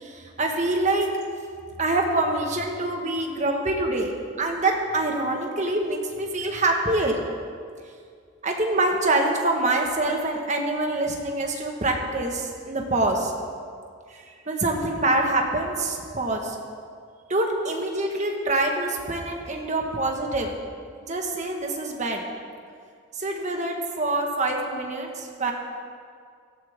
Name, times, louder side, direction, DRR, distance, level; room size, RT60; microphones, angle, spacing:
voice 1, 0.0-1.1 1.8-7.2 8.4-13.3 14.1-16.5 17.3-20.5 21.0-22.2 23.1-25.5, right 2 dB, 35° right, 2 dB, 1.5 m, -25 dB
16.5 x 14.0 x 3.6 m, 2.2 s
head